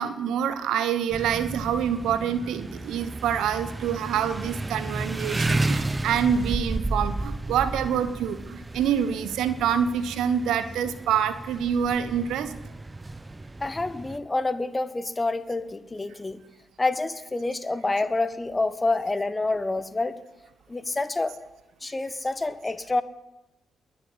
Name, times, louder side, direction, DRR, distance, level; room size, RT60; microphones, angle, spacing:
voice 1, 0.0-12.5, right 8 dB, 65° right, 12 dB, 1.1 m, -26 dB
sound 1, 1.1-14.2, right 2 dB, 20° right, 0.8 m, -32 dB
voice 2, 13.6-16.4 16.8-20.2 20.7-21.4 21.8-23.0, left 2 dB, 25° left, 14 dB, 1.3 m, -27 dB
21.0 x 7.2 x 9.5 m, 0.96 s
hypercardioid pair, 40°, 0 cm